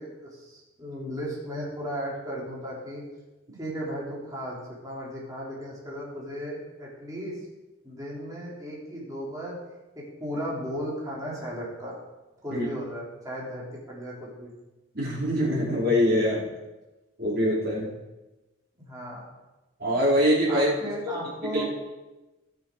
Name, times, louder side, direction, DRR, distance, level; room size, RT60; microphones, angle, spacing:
voice 1, 0.0-3.0 3.6-7.4 7.8-9.6 10.0-11.9 12.4-14.5 18.8-19.2 20.5-21.8, equal, 20° right, -5 dB, 3.7 m, -35 dB
voice 2, 14.9-16.5 17.2-17.9 19.8-20.7 21.0-21.2 21.5-21.6, equal, 50° right, -6 dB, 4.4 m, -23 dB
19.0 x 6.6 x 4.8 m, 1.1 s
head